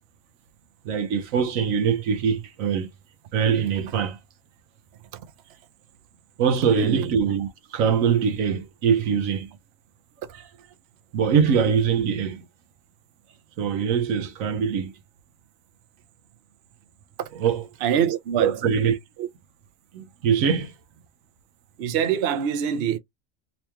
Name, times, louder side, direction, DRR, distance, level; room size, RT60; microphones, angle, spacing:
voice 1, 0.8-2.9 3.3-4.2 6.4-9.5 11.1-12.4 13.6-14.9 17.4-17.7 18.4-19.0 19.9-20.7, right 7 dB, 90° right, 1.1 m, -23 dB
voice 2, 6.7-7.1 17.2-17.3 17.8-18.6 19.2-19.3 21.8-23.0, right 9 dB, 60° right, 0.8 m, -24 dB
3.0 x 3.0 x 3.3 m
omnidirectional pair, 1.3 m